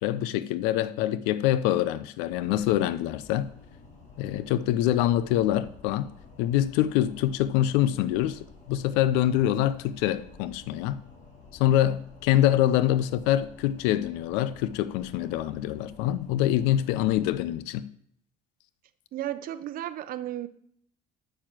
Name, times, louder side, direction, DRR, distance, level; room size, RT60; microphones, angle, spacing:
voice 1, 0.0-3.5 4.2-6.1 6.4-11.0 11.6-17.9, left 12 dB, 85° left, 0.6 m, -25 dB
sound 1, 2.3-17.5, left 4 dB, 45° left, 3.5 m, -51 dB
voice 2, 19.1-20.5, right 12 dB, 60° right, 0.7 m, -33 dB
7.4 x 6.9 x 7.4 m
supercardioid pair, 100°, 17 cm